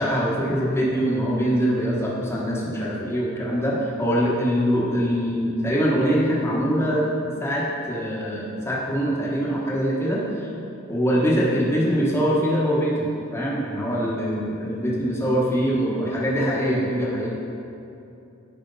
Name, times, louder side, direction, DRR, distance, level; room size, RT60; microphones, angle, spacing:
voice 1, 0.0-10.5 10.9-17.3, equal, 10° left, -5 dB, 1.2 m, -23 dB
9.3 x 5.0 x 4.0 m, 2.7 s
head